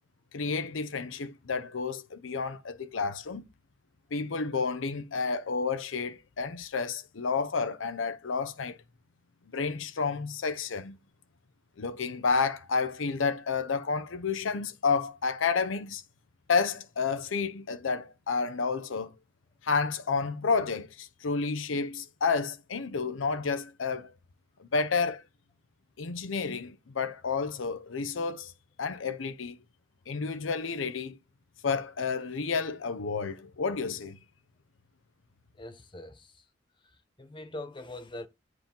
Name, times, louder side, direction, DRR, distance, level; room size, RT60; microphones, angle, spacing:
voice 1, 0.3-3.5 4.1-8.8 9.5-11.0 11.8-16.0 16.5-19.1 19.6-24.1 24.6-25.2 26.0-28.5 28.8-29.6 30.1-31.2 31.6-34.2, left 5 dB, 90° left, 0.7 m, -30 dB
voice 2, 35.5-36.5 36.8-38.3, left 1 dB, 25° left, 0.9 m, -43 dB
8.9 x 4.7 x 3.8 m
head